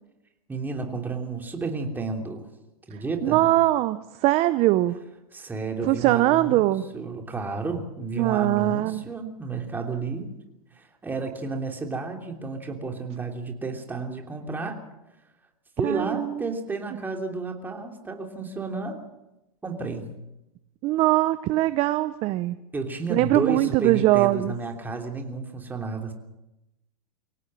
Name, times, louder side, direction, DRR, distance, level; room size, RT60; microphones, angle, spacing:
voice 1, 0.5-2.5 2.9-3.4 5.3-10.3 10.7-14.8 15.8-19.1 19.6-20.1 22.7-26.1, right 3 dB, 10° right, 3 dB, 3.2 m, -32 dB
voice 2, 2.9-5.0 5.8-6.8 8.2-9.0 15.8-16.5 20.8-22.6 23.1-24.5, right 17 dB, 30° right, 13 dB, 0.8 m, -22 dB
24.0 x 17.5 x 7.8 m, 0.92 s
supercardioid pair, 140°, 19 cm